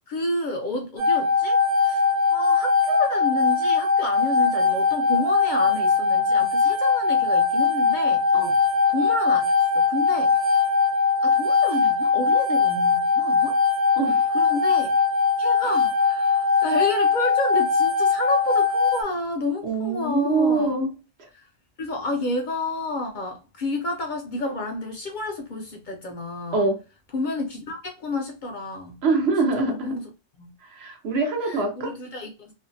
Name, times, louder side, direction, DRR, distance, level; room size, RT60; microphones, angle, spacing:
voice 1, 0.1-8.3 8.9-10.7 11.2-13.6 14.3-15.0 15.4-20.7 21.3-21.5 21.8-26.7 27.1-29.0 29.4-30.0 30.4-30.5 31.4-32.5, left 2 dB, 55° left, 0.6 m, -30 dB
sound 1, 1.0-19.0, left 5 dB, 25° right, 1.0 m, -21 dB
voice 2, 14.0-14.3 19.6-20.9 26.5-26.8 29.0-30.0 30.6-31.9, right 3 dB, 70° right, 1.0 m, -24 dB
2.6 x 2.2 x 2.5 m
omnidirectional pair, 1.1 m